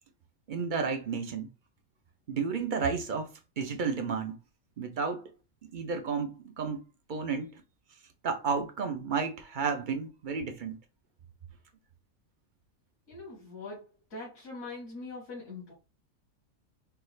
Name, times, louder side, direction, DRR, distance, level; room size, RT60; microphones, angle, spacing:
voice 1, 0.5-1.5 2.3-4.4 4.8-5.3 5.7-6.8 7.1-7.5 8.2-10.8, right 5 dB, 55° right, 0.6 m, -32 dB
voice 2, 13.1-15.7, left 3 dB, 75° left, 2.2 m, -42 dB
4.6 x 2.4 x 3.1 m
omnidirectional pair, 1.5 m